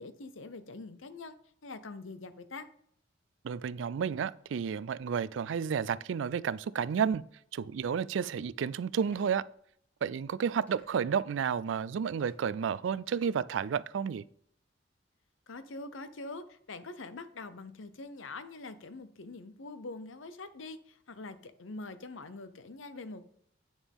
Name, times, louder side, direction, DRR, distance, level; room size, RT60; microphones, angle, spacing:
voice 1, 0.0-1.4 1.6-2.7 15.5-23.3, left 3 dB, 85° left, 0.8 m, -44 dB
voice 2, 3.4-7.2 7.5-9.4 10.0-14.2, right 7 dB, 70° right, 0.3 m, -31 dB
sound 1, 9.0-9.3 10.7-11.2 12.3-12.5 13.1-13.8, equal, 10° left, 2.1 m, -62 dB
8.9 x 7.1 x 3.6 m
head